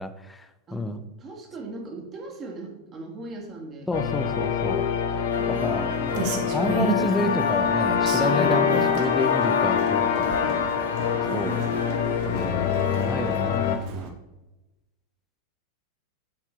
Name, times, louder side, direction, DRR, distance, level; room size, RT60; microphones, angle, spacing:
voice 1, 0.0-1.0 3.9-4.9 5.5-10.7 11.3-11.5 12.2-12.7 13.0-14.2, left 1 dB, 10° left, 10 dB, 0.6 m, -30 dB
voice 2, 1.2-3.9 5.3-6.2 10.3-10.8 11.3-12.4, right 2 dB, 25° right, 0 dB, 1.9 m, -39 dB
sound 1, 3.9-13.8, left 7 dB, 55° left, 0.8 m, -25 dB
sound 2, 5.3-13.4, left 1 dB, 80° left, 1.5 m, -38 dB
Rain, 5.9-14.1, right 2 dB, 45° right, 1.3 m, -35 dB
7.6 x 4.5 x 6.7 m, 1.0 s
figure-of-eight pair, 90°, 0 cm